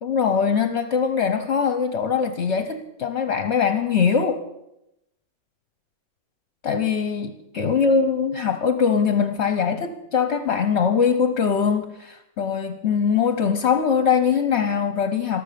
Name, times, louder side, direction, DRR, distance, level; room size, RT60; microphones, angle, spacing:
voice 1, 0.0-4.4 6.6-15.4, left 6 dB, 50° left, 9 dB, 1.0 m, -22 dB
14.0 x 12.5 x 6.8 m, 0.87 s
omnidirectional pair, 2.0 m